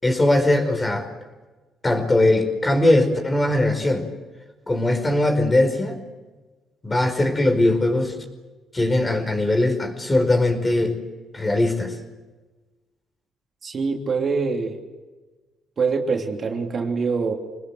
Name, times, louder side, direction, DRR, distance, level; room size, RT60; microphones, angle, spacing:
voice 1, 0.0-1.1 1.8-4.1 4.7-6.0 6.8-8.1 8.7-11.0 11.3-11.9, left 1 dB, 20° left, 6 dB, 5.2 m, -20 dB
voice 2, 13.6-14.8 15.8-17.3, right 4 dB, 45° right, 2 dB, 3.2 m, -24 dB
27.0 x 20.0 x 8.1 m, 1.2 s
cardioid pair, 90°, 0 cm